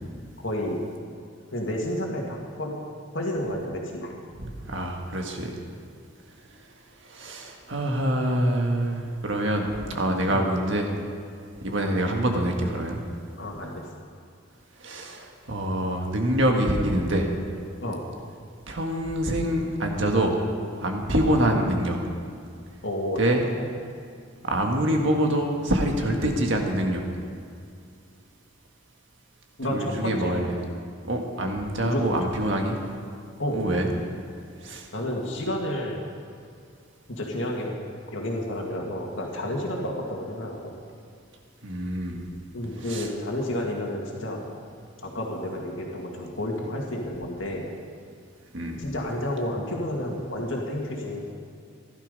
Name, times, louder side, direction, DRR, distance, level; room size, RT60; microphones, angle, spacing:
voice 1, 0.4-0.8 1.5-2.8 3.1-4.1 10.3-10.4 13.4-13.8 17.8-18.0 22.8-23.2 23.6-23.7 29.6-30.3 31.8-32.2 33.4-33.6 34.9-36.0 37.1-37.8 38.1-40.7 42.5-44.4 45.0-47.7 48.8-51.3, left 1 dB, 70° left, -1 dB, 2.2 m, -30 dB
voice 2, 4.4-5.6 7.0-10.9 11.6-13.0 14.8-17.3 18.7-20.4 20.8-22.0 23.2-23.4 24.4-27.1 29.7-30.6 31.1-32.8 33.5-33.9 34.6-34.9 41.6-42.2 42.8-43.1 48.5-48.8, right 1 dB, 65° right, 2 dB, 1.7 m, -25 dB
15.5 x 12.0 x 5.3 m, 2.4 s
head